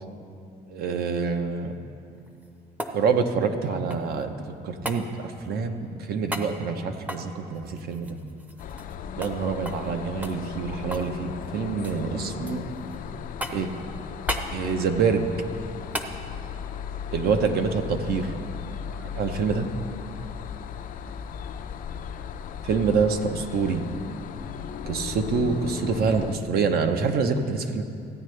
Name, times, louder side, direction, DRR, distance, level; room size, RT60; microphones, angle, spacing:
voice 1, 0.7-1.7 2.9-8.2 9.2-12.7 13.5-13.7 14.5-15.3 17.1-18.3 19.0-19.7 22.6-23.8 24.8-27.8, right 5 dB, 65° right, 6 dB, 0.8 m, -26 dB
sound 1, 2.2-4.3 4.9-5.1 6.3-6.5 7.0-9.0 9.2-9.4 9.7-9.9 10.2-11.1 11.4-12.0 12.5-13.0 13.4-13.8 14.3-14.5 15.9-16.2 18.5-18.6, right 1 dB, 10° right, 0.6 m, -35 dB
sound 2, 8.6-26.3, left 7 dB, 55° left, 0.4 m, -36 dB
15.0 x 9.1 x 3.2 m, 2.5 s
cardioid pair, 110°, 17 cm